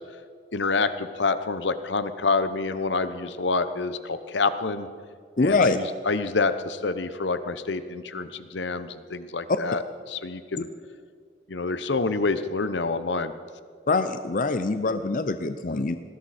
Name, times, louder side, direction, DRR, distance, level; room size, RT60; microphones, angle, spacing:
voice 1, 0.5-4.9 5.4-9.8 10.1-10.7 11.5-13.3 15.6-15.8, left 3 dB, 80° left, 12 dB, 0.9 m, -27 dB
voice 2, 5.4-5.8 13.9-16.0, left 3 dB, 45° left, 10 dB, 0.5 m, -24 dB
19.5 x 16.5 x 4.3 m, 2.1 s
head